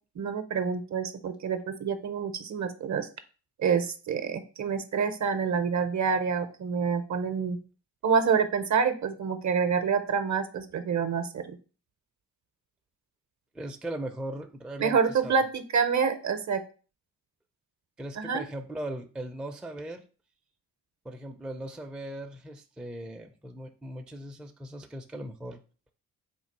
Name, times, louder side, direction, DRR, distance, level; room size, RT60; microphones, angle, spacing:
voice 1, 0.2-3.1 3.6-7.6 8.0-11.6 14.8-16.6 18.2-18.4, right 6 dB, 45° right, 9 dB, 0.6 m, -27 dB
voice 2, 13.5-15.4 18.0-20.1 21.0-25.6, right 1 dB, 5° right, 4 dB, 0.4 m, -39 dB
3.7 x 2.3 x 4.5 m, 0.37 s
cardioid pair, 65°, 40 cm